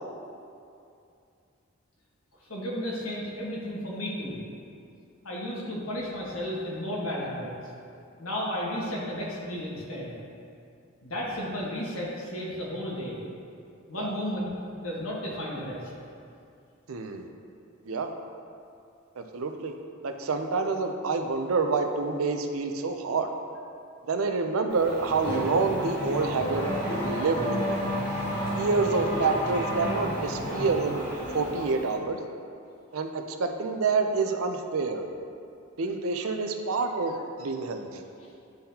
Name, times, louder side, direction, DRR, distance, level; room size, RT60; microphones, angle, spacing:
voice 1, 2.5-4.4 5.2-7.5 8.2-10.1 11.0-13.2 13.9-15.9, equal, 80° left, -5 dB, 1.4 m, -33 dB
voice 2, 16.9-17.3 17.9-18.1 19.2-19.7 20.0-23.3 24.1-27.8 28.6-31.1 31.3-32.2 32.9-35.0 35.8-38.0, right 4 dB, 85° right, 6 dB, 0.5 m, -28 dB
Race car auto racing / Accelerating revving vroom, 24.7-31.9, equal, 25° left, 1.4 m, -31 dB
10.0 x 3.8 x 2.8 m, 2.5 s
head